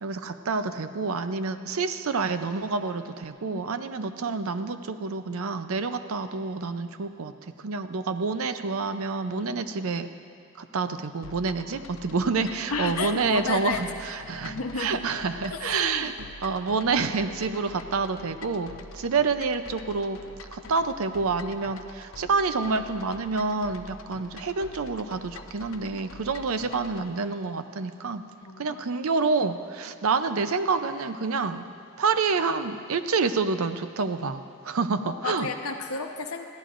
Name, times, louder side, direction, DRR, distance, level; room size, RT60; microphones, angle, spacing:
voice 1, 0.0-10.1 10.6-16.1 16.4-20.2 20.5-28.2 28.6-31.7 32.0-35.5, right 4 dB, 75° right, 10 dB, 0.6 m, -28 dB
sound 1, 11.2-27.1, left 3 dB, 65° left, 0.6 m, -46 dB
voice 2, 12.7-14.1 14.5-15.1 15.5-16.1 25.9-26.0 28.4-28.8 35.0-36.4, left 4 dB, 85° left, 4 dB, 1.0 m, -32 dB
21.0 x 14.5 x 2.5 m, 2.5 s
head